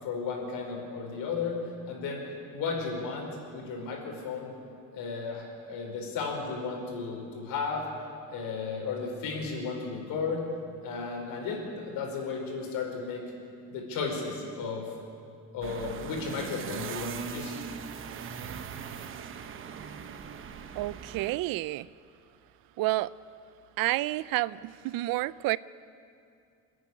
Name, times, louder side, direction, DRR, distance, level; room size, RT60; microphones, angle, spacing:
voice 1, 0.0-1.6 1.9-2.2 2.5-4.5 4.9-7.9 8.3-10.4 10.8-13.2 13.7-14.9 15.5-17.6, left 4 dB, 75° left, 5.2 m, -34 dB
sound 1, 15.6-21.4, right 7 dB, 35° right, 0.9 m, -40 dB
voice 2, 20.8-21.9 22.8-23.1 23.8-25.6, right 18 dB, 85° right, 0.6 m, -29 dB
28.5 x 10.5 x 9.9 m
cardioid pair, 175°, 34 cm